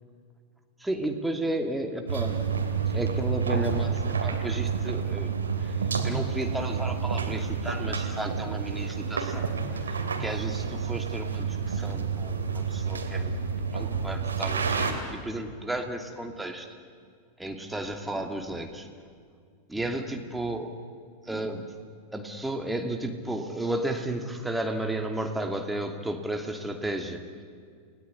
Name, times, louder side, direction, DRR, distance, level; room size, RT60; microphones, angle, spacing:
voice 1, 0.8-2.4 2.9-5.3 5.6-5.8 6.0-9.5 9.9-10.0 10.2-13.3 13.7-16.7 17.4-18.9 19.7-20.7 21.2-21.6 22.1-27.2, right 1 dB, 5° right, 4 dB, 2.7 m, -33 dB
sound 1, 2.1-14.9, right 6 dB, 70° right, 2.9 m, -29 dB
29.5 x 19.0 x 9.9 m, 2.1 s
figure-of-eight pair, 90°, 0 cm